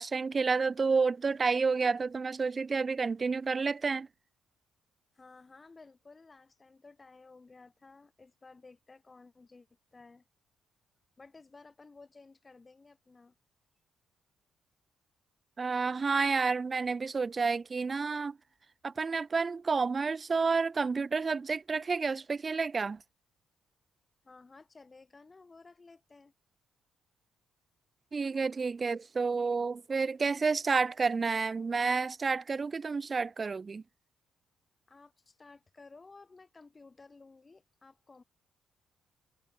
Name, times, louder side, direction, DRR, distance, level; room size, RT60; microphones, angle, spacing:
voice 1, 0.0-4.1 15.6-18.4 18.8-23.0 28.1-33.8, right 4 dB, 35° right, 0.6 m, -30 dB
voice 2, 5.1-10.2 11.2-13.3 24.2-26.3 34.9-38.2, left 3 dB, 25° left, 2.8 m, -55 dB
cardioid pair, 90°, 0 cm